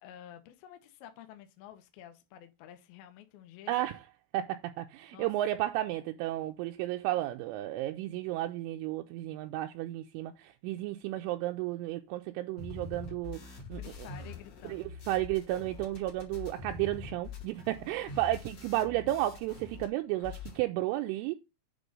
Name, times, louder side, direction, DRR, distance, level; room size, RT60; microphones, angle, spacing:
voice 1, 0.0-3.7 5.1-5.3 13.7-14.9, left 11 dB, 90° left, 2.1 m, -50 dB
voice 2, 3.7-4.0 4.3-13.8 14.6-21.3, right 15 dB, 85° right, 2.9 m, -33 dB
sound 1, 12.6-19.9 20.1-20.6, left 4 dB, 50° left, 2.1 m, -45 dB
8.3 x 3.8 x 5.2 m
omnidirectional pair, 5.8 m